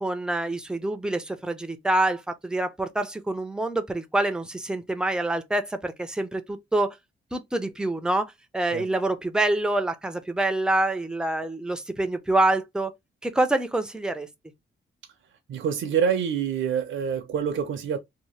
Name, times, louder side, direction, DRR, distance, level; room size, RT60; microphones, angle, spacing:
voice 1, 0.0-7.0 7.3-12.9 13.2-14.3, right 2 dB, 5° right, 0.4 m, -26 dB
voice 2, 15.5-18.0, right 7 dB, 70° right, 0.5 m, -26 dB
2.7 x 2.1 x 3.0 m
wide cardioid pair, 130°, 20 cm